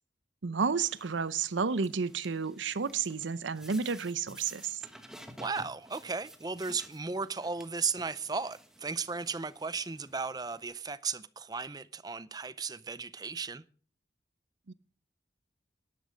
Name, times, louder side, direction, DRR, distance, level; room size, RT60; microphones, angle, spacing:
voice 1, 0.4-4.8 14.7-14.8, right 5 dB, 85° right, 0.7 m, -31 dB
sound 1, 0.8-10.6, equal, 5° right, 1.3 m, -54 dB
voice 2, 5.4-13.6, right 5 dB, 20° right, 0.5 m, -35 dB
12.0 x 11.5 x 5.2 m
head